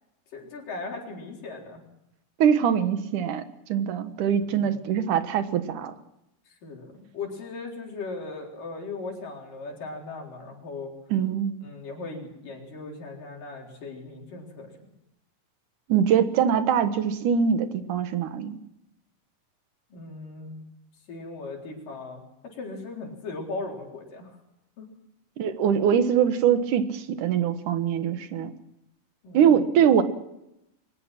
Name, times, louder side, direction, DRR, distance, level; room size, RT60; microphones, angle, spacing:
voice 1, 0.3-1.8 4.4-4.9 6.5-10.9 11.6-14.7 19.9-20.6 21.1-24.4 24.8-24.9 29.2-29.8, left 3 dB, 75° left, 0 dB, 5.6 m, -38 dB
voice 2, 2.4-3.4 3.7-5.9 11.1-11.5 15.9-18.6 25.4-28.5 29.3-30.0, right 8 dB, 70° right, 9 dB, 2.9 m, -23 dB
23.0 x 20.0 x 6.1 m, 0.84 s
omnidirectional pair, 3.8 m